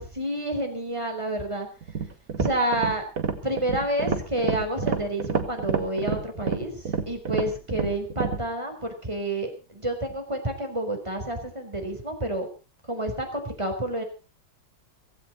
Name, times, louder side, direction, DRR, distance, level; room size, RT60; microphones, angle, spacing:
voice 1, 0.0-1.7 2.4-3.0 3.4-12.5 12.9-14.0, right 1 dB, 15° right, 4 dB, 4.1 m, -29 dB
sound 1, 1.8-8.5, right 6 dB, 45° right, 1.8 m, -29 dB
17.0 x 16.0 x 4.1 m, 0.33 s
omnidirectional pair, 2.1 m